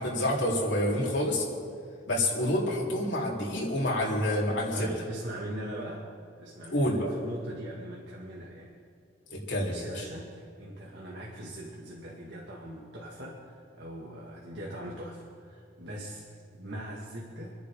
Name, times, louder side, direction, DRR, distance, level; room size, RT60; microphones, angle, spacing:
voice 1, 0.0-1.5 2.1-4.9 6.7-7.1 9.3-10.0, left 1 dB, 85° left, -4 dB, 3.7 m, -28 dB
voice 2, 4.7-6.1 6.4-8.7 9.7-17.5, right 1 dB, 80° right, -4 dB, 2.1 m, -41 dB
28.5 x 10.5 x 3.8 m, 2.2 s
head